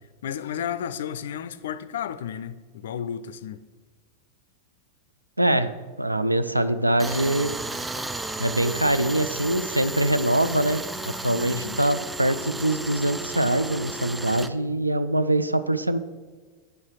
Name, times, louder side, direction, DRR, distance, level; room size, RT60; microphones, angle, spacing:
voice 1, 0.2-3.6 11.3-11.8, left 9 dB, 60° left, 0.4 m, -32 dB
voice 2, 5.4-5.7 6.0-7.5 8.4-10.8 11.2-16.0, right 1 dB, 85° right, 0.4 m, -23 dB
Tools, 7.0-14.5, right 2 dB, 10° right, 0.4 m, -33 dB
8.3 x 5.6 x 4.7 m
figure-of-eight pair, 90°, 0 cm